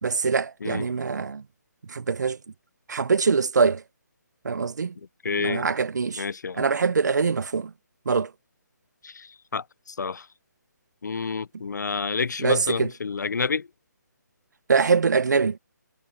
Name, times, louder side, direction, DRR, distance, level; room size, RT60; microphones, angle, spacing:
voice 1, 0.0-1.4 1.9-2.4 2.9-3.8 4.4-4.9 5.4-6.3 6.5-7.7 8.0-8.3 12.4-12.9 14.7-15.6, right 5 dB, 70° right, 1.3 m, -23 dB
voice 2, 5.2-5.7 6.2-6.7 9.0-10.3 11.0-13.7, left 5 dB, 70° left, 1.0 m, -29 dB
hypercardioid pair, 160°, 10 cm